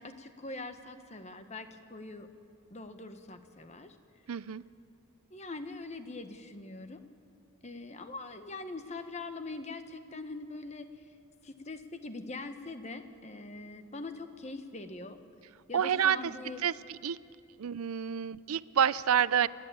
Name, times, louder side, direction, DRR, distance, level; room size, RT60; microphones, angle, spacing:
voice 1, 0.0-2.3 2.7-4.0 5.3-7.0 7.6-11.2 11.4-15.2 15.7-16.7, left 3 dB, 30° left, 8 dB, 1.1 m, -43 dB
voice 2, 4.3-4.6 15.7-16.3 16.6-17.2 17.6-19.5, right 8 dB, 85° right, 18 dB, 0.5 m, -28 dB
29.0 x 11.5 x 8.6 m, 2.5 s
head